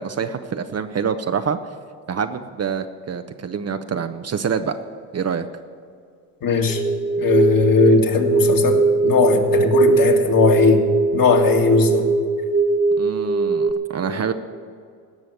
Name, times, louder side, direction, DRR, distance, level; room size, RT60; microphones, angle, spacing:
voice 1, 0.0-1.6 2.1-4.8 5.1-5.4 13.0-14.3, right 6 dB, 30° right, 8 dB, 0.8 m, -26 dB
voice 2, 6.4-6.8 7.2-10.9 11.1-12.1, left 5 dB, 45° left, 3 dB, 2.0 m, -18 dB
sound 1, 6.7-13.7, right 4 dB, 15° right, 1.6 m, -20 dB
18.0 x 6.3 x 9.2 m, 2.2 s
supercardioid pair, 75°, 47 cm